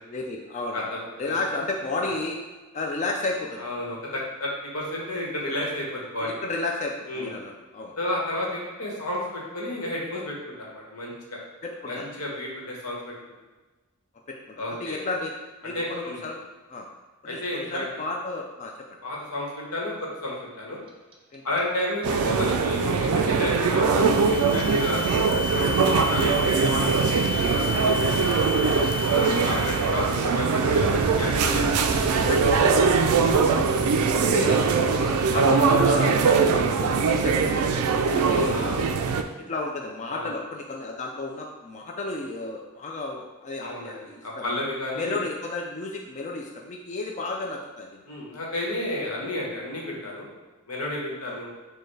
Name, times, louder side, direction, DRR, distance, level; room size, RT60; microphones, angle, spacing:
voice 1, 0.1-0.9 1.2-2.4 2.7-3.7 6.2-7.9 11.6-12.1 14.5-15.3 15.6-16.4 16.7-16.9 17.2-18.7 21.3-21.4 25.6-25.8 29.4-29.6 32.2-34.6 35.0-39.0 39.5-44.5 44.9-48.0 51.2-51.4, left 3 dB, 35° left, 0 dB, 0.4 m, -33 dB
voice 2, 3.6-6.3 7.1-7.3 8.0-11.4 11.9-13.1 14.6-15.0 15.7-16.2 17.2-17.9 19.0-19.9 20.2-20.8 21.4-25.0 25.5-26.4 26.7-28.4 29.1-31.8 32.9-33.2 36.6-36.7 38.3-38.8 40.1-40.3 43.6-45.2 48.1-50.3 50.7-51.5, left 1 dB, 90° left, -3 dB, 1.1 m, -31 dB
Clock, 20.9-23.9 24.1-27.1 27.4-36.3, right 2 dB, 25° right, 0.5 m, -35 dB
sound 1, 22.0-39.2, right 5 dB, 85° right, 0.4 m, -22 dB
sound 2, 23.7-30.3, left 4 dB, 65° left, 1.0 m, -33 dB
6.5 x 2.2 x 3.2 m, 1.2 s
head